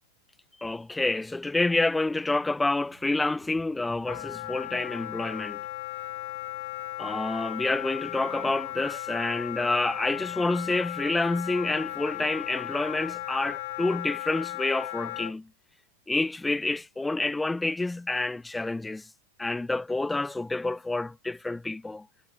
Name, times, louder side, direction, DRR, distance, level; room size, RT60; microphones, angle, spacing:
voice 1, 0.6-5.6 7.0-15.5 16.1-19.0 19.4-22.1, left 2 dB, 5° left, 0.5 m, -28 dB
sound 1, 2.3-14.0, right 13 dB, 55° right, 5.0 m, -58 dB
Wind instrument woodwind instrument, 4.1-15.3, left 18 dB, 50° left, 1.0 m, -36 dB
figure-of-eight pair, 90°, 0 cm